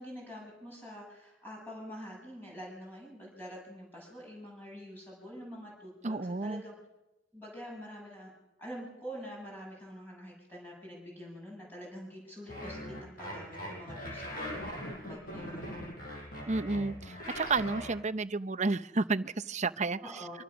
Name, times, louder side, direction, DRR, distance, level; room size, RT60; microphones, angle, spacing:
voice 1, 0.0-6.7 7.3-8.3 8.6-15.8 20.0-20.4, equal, 10° left, -3 dB, 7.0 m, -46 dB
voice 2, 6.0-6.6 16.5-20.4, right 3 dB, 40° right, 12 dB, 0.8 m, -32 dB
sound 1, 12.5-17.9, equal, 50° left, 7.9 m, -41 dB
26.0 x 25.5 x 6.1 m, 0.97 s
head